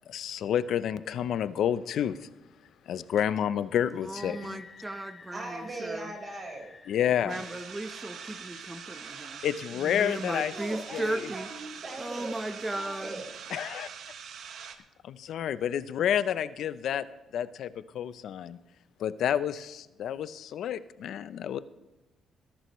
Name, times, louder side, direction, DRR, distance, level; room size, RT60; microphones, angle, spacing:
voice 1, 0.1-2.2 2.9-4.6 6.9-7.4 9.4-10.5 10.9-11.2 13.5-13.9 15.0-17.1 17.3-18.6 19.0-21.6, left 9 dB, 70° left, 14 dB, 0.6 m, -29 dB
voice 2, 4.0-6.1 7.2-9.4 9.8-11.5 12.0-13.2, right 1 dB, 15° right, 9 dB, 1.1 m, -36 dB
sound 1, 4.2-9.7, left 5 dB, 45° left, 1.3 m, -53 dB
voice 3, 5.3-6.7 10.5-12.4 12.7-13.3, right 2 dB, 40° right, 1 dB, 4.8 m, -39 dB
sound 2, 7.3-14.8, right 7 dB, 70° right, 1.3 m, -44 dB
20.5 x 11.5 x 3.2 m, 1.1 s
cardioid pair, 90°, 0 cm